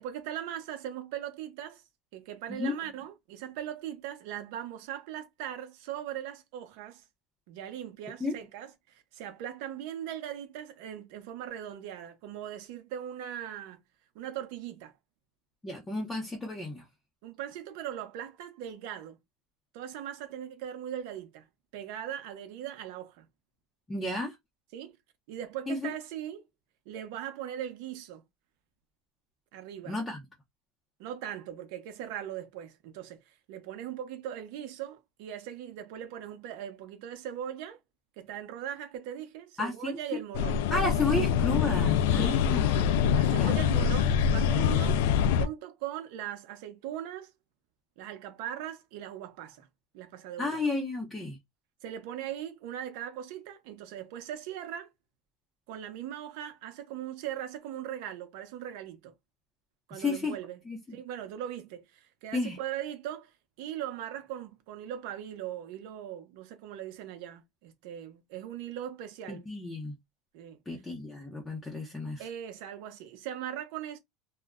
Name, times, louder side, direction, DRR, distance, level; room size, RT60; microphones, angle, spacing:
voice 1, 0.0-1.8 2.1-7.0 7.5-13.8 14.1-14.9 17.2-19.2 19.7-21.5 21.7-23.3 24.7-25.0 25.3-26.4 26.9-28.2 29.5-30.0 31.0-37.8 38.2-40.7 42.2-45.0 45.4-47.3 48.0-49.7 49.9-50.6 51.8-54.9 55.7-59.1 59.9-60.6 60.9-69.5 70.3-70.6 72.2-74.0, right 10 dB, 60° right, 0.7 m, -40 dB
voice 2, 15.6-16.8 23.9-24.3 25.7-25.9 29.9-30.2 39.6-40.0 40.7-42.8 43.4-43.5 50.4-51.4 59.9-60.3 60.7-61.0 62.3-62.6 69.3-69.9 70.7-72.2, left 2 dB, 10° left, 0.6 m, -32 dB
sound 1, 40.3-45.5, left 7 dB, 80° left, 0.3 m, -25 dB
2.3 x 2.1 x 3.5 m
cardioid pair, 170°, 0 cm